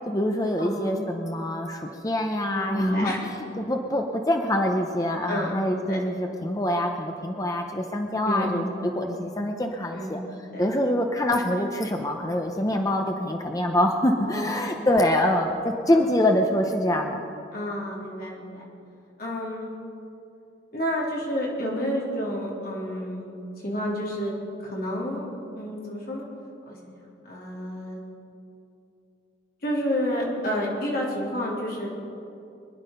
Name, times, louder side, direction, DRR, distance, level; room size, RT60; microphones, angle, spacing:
voice 1, 0.1-8.7 8.9-10.2 10.6-17.2, left 1 dB, 20° left, 3 dB, 0.8 m, -25 dB
voice 2, 0.6-0.9 2.5-3.2 5.3-5.5 5.9-6.0 8.2-8.5 9.9-10.3 10.5-10.7 14.2-14.8 15.9-16.1 17.5-18.6 19.2-19.7 20.7-23.3 23.6-24.3 24.6-25.3 25.6-26.2 26.7-28.0 29.6-31.9, equal, 50° left, -4 dB, 3.7 m, -30 dB
24.0 x 10.5 x 5.5 m, 2.7 s
head